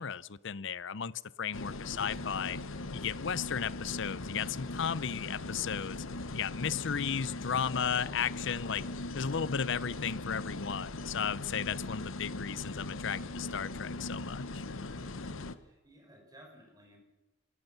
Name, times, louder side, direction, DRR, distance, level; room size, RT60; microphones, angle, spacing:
voice 1, 0.0-2.6 2.9-6.0 6.3-8.8 9.1-14.6, left 7 dB, 65° left, 19 dB, 0.7 m, -35 dB
sound 1, 1.5-15.6, left 2 dB, 80° left, 1.0 m, -40 dB
voice 2, 15.5-17.0, right 1 dB, 20° right, 2 dB, 5.5 m, -57 dB
27.5 x 13.5 x 7.0 m, 1.1 s
head